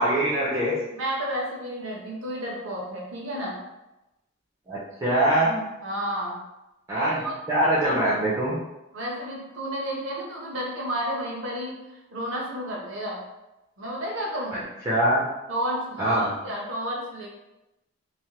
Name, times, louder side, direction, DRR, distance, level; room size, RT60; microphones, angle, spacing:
voice 1, 0.0-0.7 4.7-5.7 6.9-7.2 7.5-8.6 14.9-15.2 16.0-16.3, right 1 dB, 15° right, -8 dB, 0.5 m, -23 dB
voice 2, 0.9-3.6 5.8-6.4 6.9-7.4 8.9-13.2 13.8-14.7 15.5-17.3, equal, 65° right, -3 dB, 0.8 m, -31 dB
3.1 x 2.1 x 2.8 m, 0.96 s
head